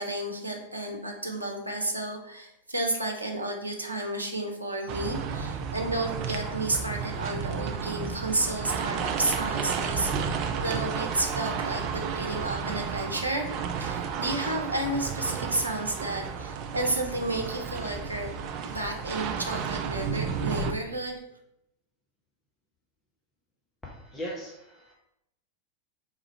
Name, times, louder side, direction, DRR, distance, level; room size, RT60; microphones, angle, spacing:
voice 1, 0.0-18.3 18.6-21.2, right 1 dB, 80° right, 1 dB, 0.7 m, -32 dB
sound 1, 4.9-20.7, right 6 dB, 40° right, 0.4 m, -32 dB
voice 2, 23.8-24.9, equal, 10° left, -4 dB, 0.7 m, -39 dB
3.7 x 2.4 x 4.3 m, 0.81 s
figure-of-eight pair, 90°, 0 cm